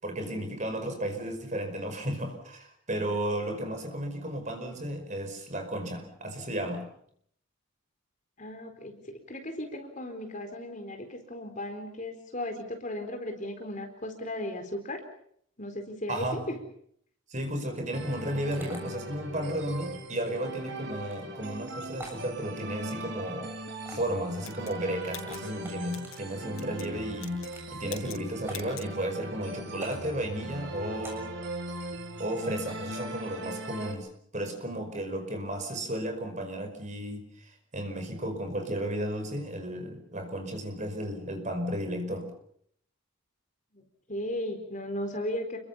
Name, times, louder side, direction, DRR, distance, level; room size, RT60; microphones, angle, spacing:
voice 1, 0.0-6.9 16.1-16.4 17.3-23.5 23.9-31.4 32.2-42.3, right 1 dB, 35° right, 6 dB, 5.2 m, -34 dB
voice 2, 8.4-8.9 9.3-15.0 15.6-16.3 35.6-35.7 43.7-43.8 44.1-45.6, left 1 dB, 35° left, 5 dB, 4.4 m, -36 dB
sound 1, 17.9-33.9, right 1 dB, 55° right, 4.5 m, -40 dB
sound 2, 18.5-18.8 21.0-21.2 21.9-22.2 23.8-24.2 25.1-26.1 27.1-27.7 28.4-28.7 29.7-30.1 31.0-31.3 32.2-32.9, right 1 dB, 10° right, 7.2 m, -46 dB
sound 3, 24.4-26.2 26.5-26.9 27.2-27.6 27.8-28.2 28.5-28.9, left 8 dB, 75° left, 7.9 m, -45 dB
30.0 x 22.5 x 5.7 m, 0.65 s
head